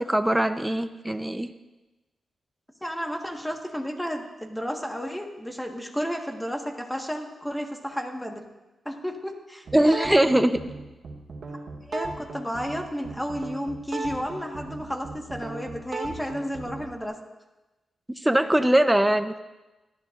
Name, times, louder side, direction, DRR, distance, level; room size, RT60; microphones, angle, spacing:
voice 1, 0.0-1.5 9.7-10.6 18.2-19.4, right 1 dB, 10° right, 9 dB, 0.8 m, -21 dB
voice 2, 2.8-8.5 8.8-10.2 11.9-17.2, equal, 5° left, 3 dB, 1.6 m, -32 dB
sound 1, 9.7-17.0, right 3 dB, 65° right, 2.0 m, -37 dB
18.0 x 12.0 x 2.6 m, 1.1 s
cardioid pair, 70°, 0 cm